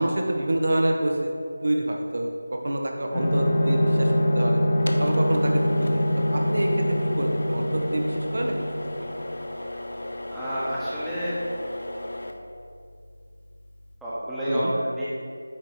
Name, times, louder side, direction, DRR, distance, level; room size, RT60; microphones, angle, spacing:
voice 1, 0.0-1.3 1.6-4.6 5.0-9.2 14.5-14.7, right 1 dB, 60° right, 1 dB, 0.9 m, -27 dB
sound 1, 3.1-9.4, equal, 15° left, 1.3 m, -24 dB
sound 2, 3.3-14.0, left 1 dB, 65° left, 0.7 m, -37 dB
voice 2, 10.3-11.4 14.0-15.0, equal, ahead, -13 dB, 1.1 m, -29 dB
8.9 x 3.9 x 4.7 m, 2.3 s
figure-of-eight pair, 165°, 0 cm